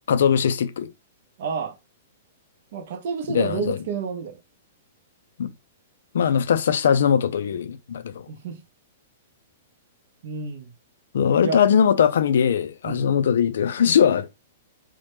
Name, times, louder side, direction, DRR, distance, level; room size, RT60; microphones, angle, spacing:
voice 1, 0.1-0.9 3.3-3.8 5.4-5.5 6.1-8.3 11.1-14.3, left 8 dB, 75° left, 0.3 m, -20 dB
voice 2, 1.4-1.7 2.7-4.4 8.3-8.6 10.2-10.7 11.4-11.6 12.8-13.0, right 6 dB, 60° right, 0.5 m, -30 dB
2.1 x 2.0 x 3.0 m
hypercardioid pair, 125°, 0 cm